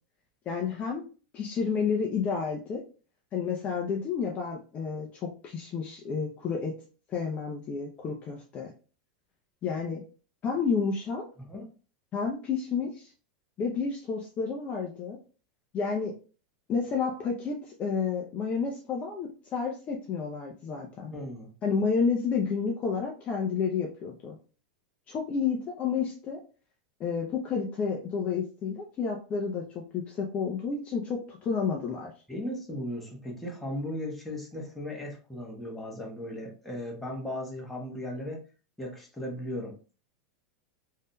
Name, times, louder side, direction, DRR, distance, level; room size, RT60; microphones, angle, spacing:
voice 1, 0.5-1.0 1.3-2.8 3.3-6.8 7.1-8.7 9.6-10.0 10.4-11.2 12.1-13.1 13.6-15.2 15.7-16.1 16.7-21.1 21.6-24.4 25.1-26.4 27.0-29.6 29.9-32.1, left 5 dB, 35° left, 0 dB, 0.6 m, -30 dB
voice 2, 21.1-21.5 32.3-38.4 38.8-39.9, left 1 dB, 5° left, -2 dB, 1.1 m, -37 dB
3.4 x 2.7 x 2.2 m, 0.36 s
supercardioid pair, 125°, 4 cm